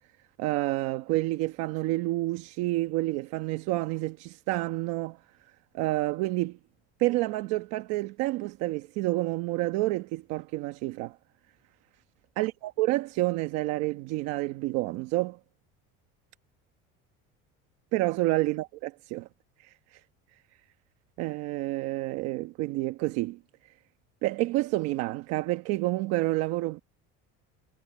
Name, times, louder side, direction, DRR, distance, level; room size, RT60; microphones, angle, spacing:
voice 1, 0.4-5.2 5.7-6.6 7.0-11.2 12.4-15.4 17.9-19.3 21.2-23.4 24.2-26.8, right 19 dB, 60° right, 1.1 m, -29 dB
cardioid pair, 175°, 30 cm